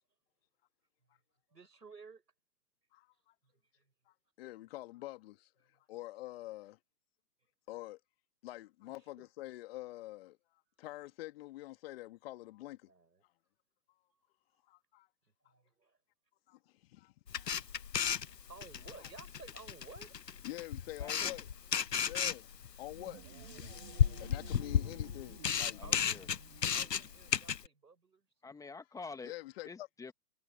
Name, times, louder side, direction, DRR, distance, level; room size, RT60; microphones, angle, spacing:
voice 1, 1.5-2.2 3.4-3.9 5.7-5.8 9.0-9.1 12.9-13.2 15.4-16.0 17.5-18.0 18.3-20.1 25.8-26.0 26.7-28.3, right 4 dB, 85° right, 6.6 m, -55 dB
voice 2, 2.9-3.3 4.1-5.5 5.9-6.8 7.7-8.0 8.4-10.4 10.8-12.9 14.7-15.1 16.5-17.5 19.0-19.1 20.4-21.5 22.0-22.5 22.8-23.2 24.2-25.8 29.2-29.9, left 17 dB, 35° left, 2.4 m, -46 dB
Camera, 17.3-27.7, left 8 dB, 90° left, 0.8 m, -34 dB
voice 3, 21.0-21.3 25.7-26.3 28.4-29.3 29.7-30.1, left 4 dB, 5° left, 1.8 m, -47 dB
sound 1, 22.8-27.4, right 16 dB, 35° right, 1.5 m, -56 dB
figure-of-eight pair, 125°, 48 cm